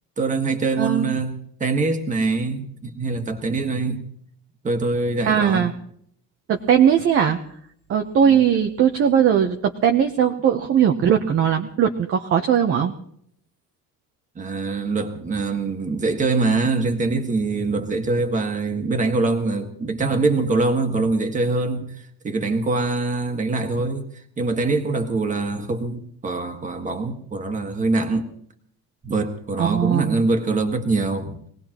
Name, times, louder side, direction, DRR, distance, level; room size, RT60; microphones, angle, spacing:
voice 1, 0.2-1.3 1.6-4.0 4.6-5.7 8.3-8.4 14.3-24.0 24.4-28.3 29.0-31.4, right 3 dB, 20° right, 5 dB, 1.6 m, -23 dB
voice 2, 0.8-1.1 5.2-5.7 6.5-7.4 7.9-12.9 29.6-30.2, right 8 dB, 35° right, 4 dB, 0.9 m, -19 dB
24.0 x 18.0 x 3.0 m, 0.66 s
cardioid pair, 155°, 36 cm